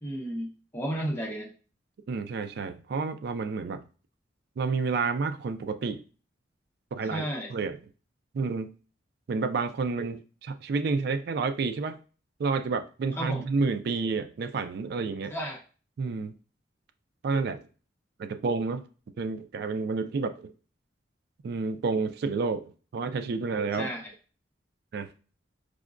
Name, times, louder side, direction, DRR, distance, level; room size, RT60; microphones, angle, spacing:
voice 1, 0.0-1.5 7.1-7.5 13.2-13.4 15.3-15.6 23.7-24.1, equal, 15° left, 0.7 m, -33 dB
voice 2, 2.1-3.8 4.6-6.0 6.9-7.8 8.3-8.7 9.3-12.0 12.4-15.3 16.0-16.3 17.2-17.6 18.2-18.9 19.2-20.5 21.4-23.9 24.9-25.1, right 4 dB, 60° right, 0.3 m, -30 dB
4.8 x 2.1 x 2.4 m
head